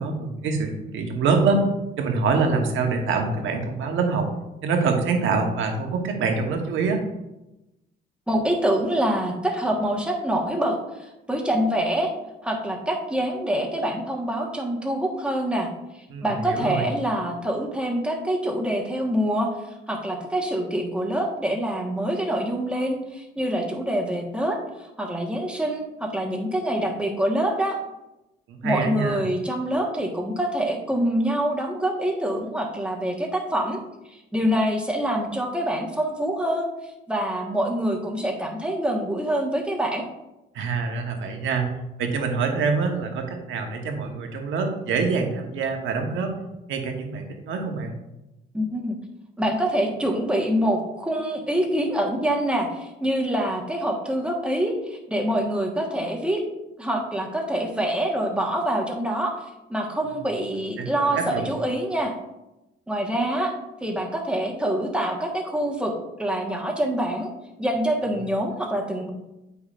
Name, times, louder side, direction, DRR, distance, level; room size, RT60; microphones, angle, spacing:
voice 1, 0.0-1.6 2.0-4.3 4.6-7.0 16.1-16.8 28.5-29.3 40.5-41.7 42.0-46.3 46.7-48.0 60.1-60.2 60.8-61.5, right 4 dB, 80° right, 3 dB, 1.2 m, -25 dB
voice 2, 8.3-10.8 11.3-12.1 12.4-15.7 16.2-19.5 19.9-24.6 25.0-27.8 28.6-33.8 34.1-36.7 37.1-40.1 48.5-49.0 49.4-56.4 56.8-59.3 59.7-62.1 62.9-63.5 63.8-65.9 66.2-67.3 67.6-69.1, right 1 dB, 5° right, 0 dB, 1.3 m, -25 dB
8.5 x 5.6 x 2.5 m, 0.96 s
cardioid pair, 90°, 20 cm